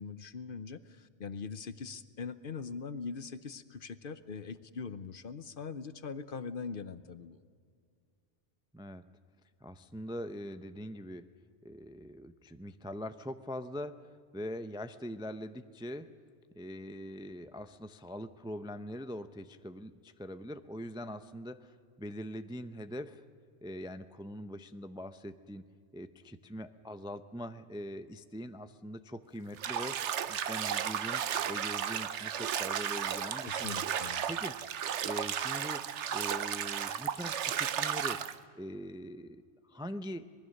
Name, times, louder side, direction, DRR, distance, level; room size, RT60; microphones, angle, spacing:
voice 1, 0.0-7.4 33.4-34.3, left 5 dB, 55° left, 13 dB, 0.9 m, -42 dB
voice 2, 9.6-11.3 11.6-16.1 16.5-23.2 23.6-25.6 25.9-33.8 34.3-34.6 35.0-35.8 36.1-38.2 38.5-40.3, equal, 5° right, 10 dB, 0.5 m, -42 dB
Bathtub (filling or washing), 29.6-38.3, right 9 dB, 75° right, 1.1 m, -34 dB
26.0 x 20.5 x 6.5 m, 2.2 s
omnidirectional pair, 1.2 m